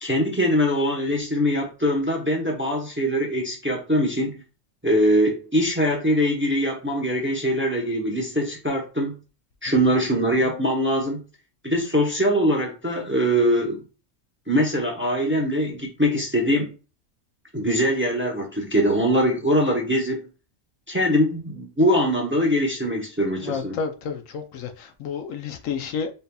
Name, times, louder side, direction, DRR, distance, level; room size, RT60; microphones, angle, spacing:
voice 1, 0.0-4.4 4.8-9.1 9.6-11.2 11.6-13.8 14.5-16.7 17.5-20.3 20.9-23.8, equal, 10° right, 0.7 m, -22 dB
voice 2, 23.4-26.1, left 6 dB, 80° left, 1.0 m, -31 dB
4.4 x 3.4 x 2.2 m
omnidirectional pair, 1.4 m